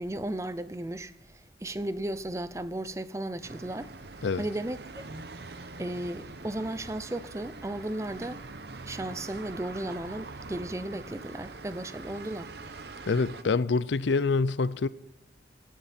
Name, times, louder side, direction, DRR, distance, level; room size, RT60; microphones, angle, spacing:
voice 1, 0.0-5.0 5.8-8.4 8.8-12.5, right 1 dB, 15° right, 0.5 m, -35 dB
sound 1, 3.4-13.4, right 3 dB, 60° right, 0.8 m, -44 dB
voice 2, 13.1-14.9, left 4 dB, 70° left, 0.5 m, -26 dB
17.0 x 9.0 x 4.3 m
head